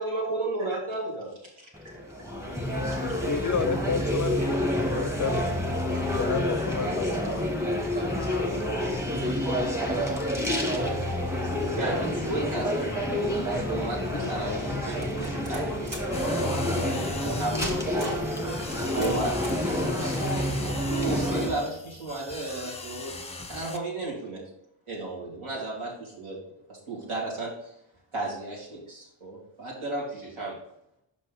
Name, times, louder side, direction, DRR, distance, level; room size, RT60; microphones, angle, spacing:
voice 1, 0.0-1.3 2.8-3.1 11.3-11.4 11.8-16.0 16.4-20.3 20.9-23.2 23.5-24.4 24.9-26.4 26.7-27.5 28.1-30.6, right 2 dB, 80° right, -4 dB, 2.9 m, -34 dB
sound 1, 1.7-21.5, left 1 dB, 5° right, 1.4 m, -28 dB
voice 2, 2.9-5.8 6.1-7.3 14.1-15.0, left 6 dB, 40° left, 10 dB, 0.4 m, -32 dB
voice 3, 7.9-11.0, left 2 dB, 20° right, 0 dB, 2.3 m, -43 dB
sound 2, 15.0-16.2 17.1-17.3 17.6-18.3 18.7-19.7, right 1 dB, 40° right, 1.9 m, -39 dB
sound 3, 16.1-23.8, left 3 dB, 15° left, 0.8 m, -40 dB
5.9 x 5.5 x 4.0 m, 0.79 s
wide cardioid pair, 80°, 49 cm